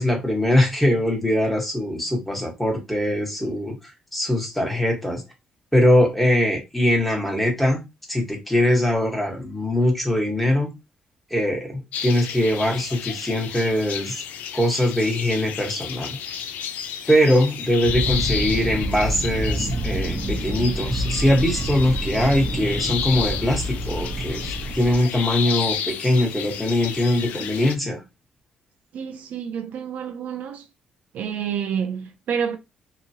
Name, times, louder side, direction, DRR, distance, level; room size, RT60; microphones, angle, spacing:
voice 1, 0.0-3.8 4.1-5.2 5.7-7.8 8.1-10.7 11.3-14.2 14.5-16.2 17.1-28.0, left 1 dB, 5° left, 1.4 m, -22 dB
sound 1, 11.9-27.8, left 8 dB, 85° left, 0.3 m, -32 dB
sound 2, 17.8-25.0, right 1 dB, 55° right, 1.0 m, -28 dB
voice 2, 28.9-30.6 31.1-32.6, right 7 dB, 75° right, 0.4 m, -28 dB
2.9 x 2.3 x 2.8 m
cardioid pair, 100°, 3 cm